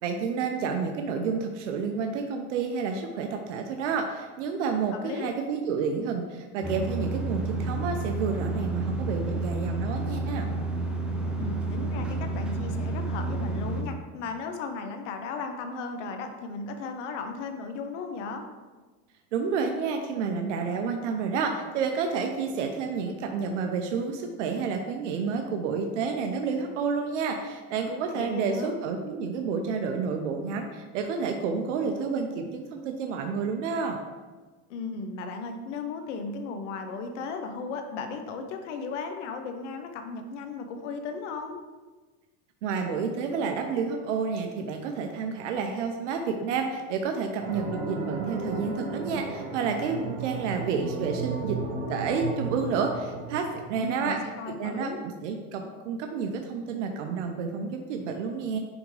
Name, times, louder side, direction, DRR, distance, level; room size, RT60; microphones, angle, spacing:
voice 1, 0.0-10.5 19.3-34.0 42.6-51.6 51.9-54.2 54.6-58.6, right 5 dB, 90° right, 4 dB, 0.7 m, -30 dB
voice 2, 4.9-5.3 11.4-18.4 28.1-28.8 34.7-41.6 53.8-55.0, left 4 dB, 90° left, 6 dB, 1.0 m, -35 dB
sound 1, 6.6-13.8, right 2 dB, 5° right, 0.7 m, -30 dB
sound 2, 47.4-54.2, right 3 dB, 65° right, 1.4 m, -34 dB
9.9 x 3.6 x 3.3 m, 1.3 s
supercardioid pair, 125°, 35 cm